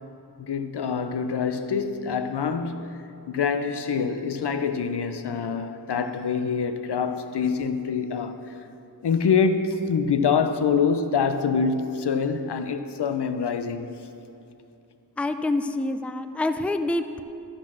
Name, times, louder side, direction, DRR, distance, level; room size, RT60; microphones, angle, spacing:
voice 1, 0.4-8.6 9.0-13.9, left 6 dB, 80° left, 0.7 m, -25 dB
voice 2, 15.2-17.2, left 2 dB, 5° left, 0.4 m, -26 dB
13.0 x 6.3 x 6.2 m
wide cardioid pair, 55°, 40 cm